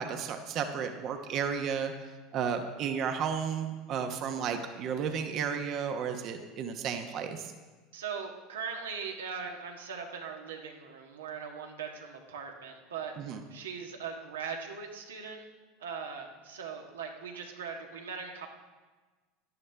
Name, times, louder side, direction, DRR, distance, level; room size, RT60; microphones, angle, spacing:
voice 1, 0.0-7.5 13.2-13.4, right 7 dB, 50° right, 6 dB, 1.0 m, -33 dB
voice 2, 7.9-15.4 15.8-18.5, right 6 dB, 85° right, 2 dB, 1.5 m, -40 dB
13.5 x 11.0 x 3.4 m, 1.3 s
hypercardioid pair, 80°, 0 cm